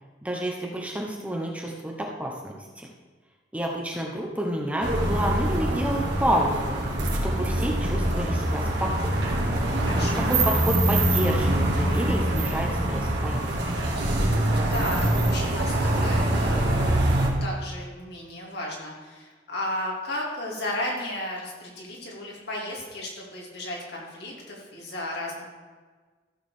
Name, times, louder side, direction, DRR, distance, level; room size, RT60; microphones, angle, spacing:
voice 1, 0.2-2.9 3.5-6.7 7.2-8.9 9.2-9.3 10.3-13.5, right 1 dB, 5° right, 0 dB, 1.0 m, -29 dB
sound 1, 4.8-17.3, right 1 dB, 60° right, 2.3 m, -24 dB
voice 2, 9.8-10.2 14.6-17.0 17.4-25.4, left 1 dB, 60° left, -3 dB, 3.0 m, -34 dB
14.0 x 4.9 x 6.6 m, 1.4 s
head